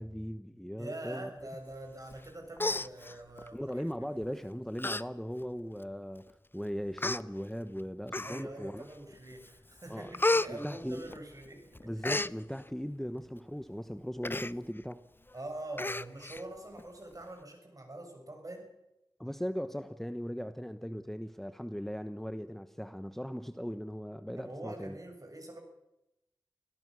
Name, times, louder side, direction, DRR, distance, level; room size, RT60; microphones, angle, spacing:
voice 1, 0.0-1.3 3.5-8.8 9.9-10.2 10.5-11.0 11.8-15.0 19.2-25.0, equal, 5° left, 11 dB, 1.1 m, -38 dB
voice 2, 0.8-4.3 8.2-11.9 15.3-18.7 24.4-25.6, right 1 dB, 45° right, 4 dB, 6.7 m, -44 dB
Human voice, 2.1-2.3 2.6-3.5 4.2-4.4 4.8-5.0 5.4-5.5 6.3-6.4 7.0-7.2 8.1-8.6 9.1-9.5 9.8-11.5 11.7-12.3 14.2-14.5 14.9-15.0 15.3-15.4 15.8-16.4 16.8-16.9, left 2 dB, 25° left, 0.7 m, -32 dB
25.0 x 17.0 x 6.3 m, 0.90 s
cardioid pair, 45°, 8 cm